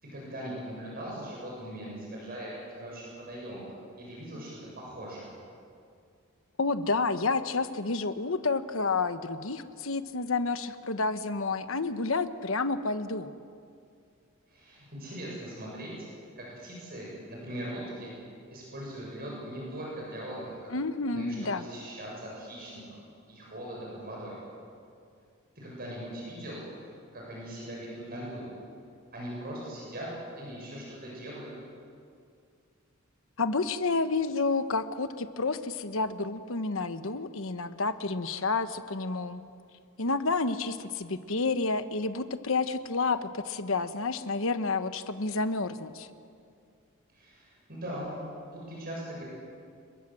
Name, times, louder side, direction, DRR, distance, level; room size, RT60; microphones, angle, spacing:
voice 1, 0.0-3.7 4.0-5.3 14.5-15.9 16.4-18.1 18.5-20.8 21.1-22.8 23.3-24.4 25.6-26.6 27.1-28.5 29.1-30.1 30.4-31.5 47.1-48.2 48.5-49.2, right 1 dB, 45° right, -4 dB, 7.5 m, -40 dB
voice 2, 6.6-13.3 20.7-21.7 33.4-39.4 40.0-46.1, left 3 dB, 70° left, 10 dB, 1.2 m, -30 dB
27.5 x 22.0 x 7.7 m, 2.3 s
head